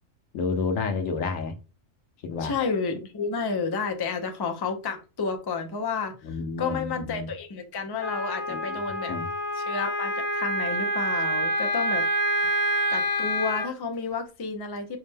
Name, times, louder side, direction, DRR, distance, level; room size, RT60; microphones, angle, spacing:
voice 1, 0.3-1.5 2.2-2.5 6.2-7.3 8.5-8.8 9.1-9.3, left 4 dB, 85° left, 1.2 m, -30 dB
voice 2, 2.4-9.2 9.5-12.0 12.9-15.0, left 5 dB, 40° left, 0.3 m, -31 dB
Wind instrument woodwind instrument, 8.0-13.7, right 1 dB, 60° left, 0.8 m, -27 dB
4.8 x 2.1 x 3.3 m
omnidirectional pair, 1.3 m